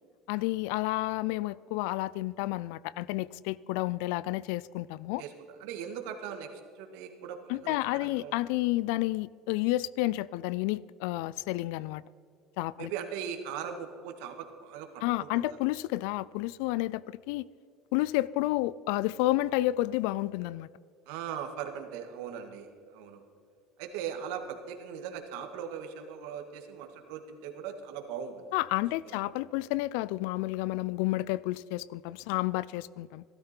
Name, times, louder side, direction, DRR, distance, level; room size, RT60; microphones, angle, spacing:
voice 1, 0.3-5.2 7.5-12.0 12.6-12.9 15.0-17.5 17.9-20.7 28.5-33.2, left 18 dB, 85° left, 0.3 m, -30 dB
voice 2, 5.6-6.5 6.8-8.3 12.8-15.6 21.1-23.2 23.8-28.5 29.1-29.3, right 8 dB, 85° right, 1.8 m, -39 dB
16.0 x 13.0 x 4.4 m
cardioid pair, 130°, 0 cm